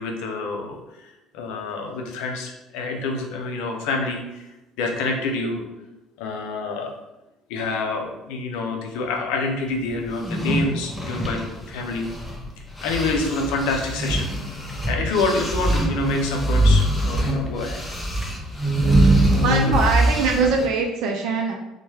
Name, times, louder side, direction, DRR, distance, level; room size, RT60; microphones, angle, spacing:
voice 1, 0.0-4.5 4.8-5.7 6.2-7.0 7.5-12.1 12.8-14.3 14.9-17.8, left 3 dB, 65° left, 2 dB, 0.5 m, -27 dB
sound 1, 10.1-12.5 12.8-20.7, right 1 dB, 10° left, 0.7 m, -22 dB
voice 2, 19.1-21.5, right 4 dB, 65° right, 2 dB, 0.4 m, -22 dB
3.2 x 2.1 x 3.1 m, 0.94 s
figure-of-eight pair, 55°, 0 cm